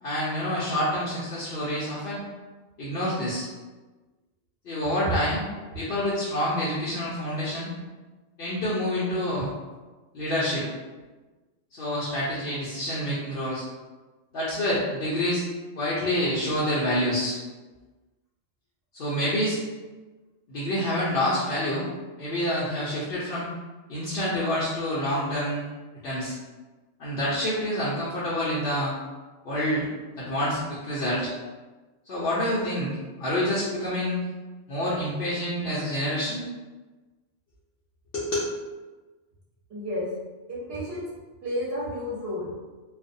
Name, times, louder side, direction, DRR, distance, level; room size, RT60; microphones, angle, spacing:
voice 1, 0.0-2.2 2.8-3.5 4.6-5.4 5.7-7.7 8.4-9.5 10.1-10.7 11.7-13.6 14.3-15.4 15.8-17.4 18.9-19.6 20.5-21.9 22.2-23.5 23.9-25.6 26.0-26.3 27.0-28.9 29.4-29.9 30.1-31.3 32.1-32.9 33.2-34.2 34.7-36.4 38.1-38.4, equal, 60° left, -9 dB, 0.7 m, -27 dB
voice 2, 39.7-40.0 40.5-41.0 41.4-42.5, equal, 60° right, -6 dB, 0.9 m, -31 dB
2.4 x 2.1 x 2.6 m, 1.2 s
omnidirectional pair, 1.3 m